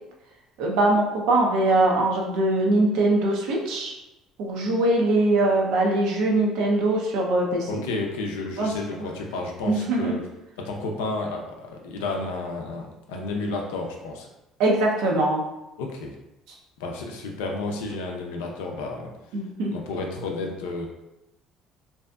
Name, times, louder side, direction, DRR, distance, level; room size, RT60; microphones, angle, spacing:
voice 1, 0.6-3.9 4.4-7.8 8.6-8.7 9.6-10.2 14.6-15.4 19.3-19.7, right 2 dB, 75° right, 0 dB, 0.5 m, -22 dB
voice 2, 7.7-10.2 10.6-14.3 15.8-16.1 16.8-19.1 19.7-20.9, left 3 dB, 90° left, 1 dB, 0.4 m, -31 dB
2.6 x 2.4 x 2.2 m, 0.93 s
supercardioid pair, 75°, 0 cm